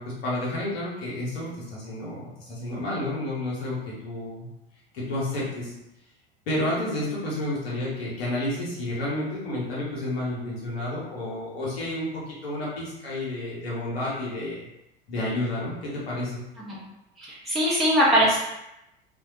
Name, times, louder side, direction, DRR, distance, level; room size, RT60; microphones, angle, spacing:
voice 1, 0.0-4.5 4.9-5.7 6.5-14.6 15.1-16.3, left 1 dB, 75° left, -6 dB, 0.8 m, -30 dB
voice 2, 17.2-18.4, equal, ahead, -8 dB, 0.7 m, -21 dB
2.2 x 2.1 x 2.7 m, 0.89 s
figure-of-eight pair, 75°, 30 cm